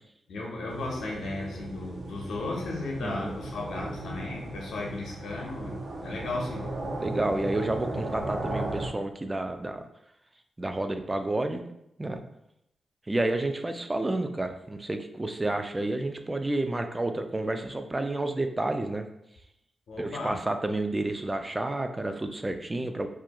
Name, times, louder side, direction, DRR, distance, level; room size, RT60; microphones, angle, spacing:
voice 1, 0.3-6.7 19.9-20.4, left 2 dB, 80° left, -2 dB, 0.5 m, -35 dB
sound 1, 0.7-8.9, right 2 dB, 65° right, 0.6 m, -36 dB
voice 2, 3.0-3.3 7.0-9.8 10.6-11.6 12.0-12.2 13.1-19.1 20.0-23.1, right 2 dB, 25° right, 7 dB, 0.3 m, -30 dB
2.3 x 2.2 x 2.7 m, 0.80 s
cardioid pair, 55°, 0 cm